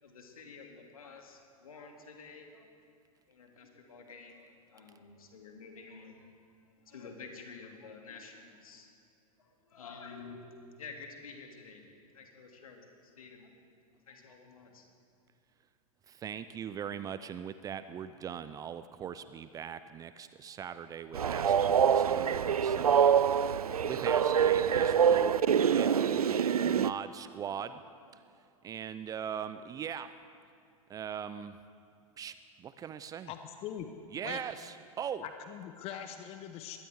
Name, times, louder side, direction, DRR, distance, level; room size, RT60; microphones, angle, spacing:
voice 1, 0.0-2.7 3.3-6.3 6.9-8.9 9.4-11.8 12.1-13.6 14.1-14.8, left 4 dB, 70° left, 2.5 m, -50 dB
voice 2, 16.1-27.8 28.6-30.1 30.9-31.6 32.2-33.3 34.1-35.3, right 8 dB, 20° right, 0.4 m, -41 dB
Train, 21.1-26.9, right 8 dB, 80° right, 0.4 m, -25 dB
voice 3, 33.3-33.9 34.2-34.4 35.2-36.8, left 9 dB, 30° left, 0.9 m, -42 dB
22.5 x 17.5 x 3.5 m
figure-of-eight pair, 95°, 19 cm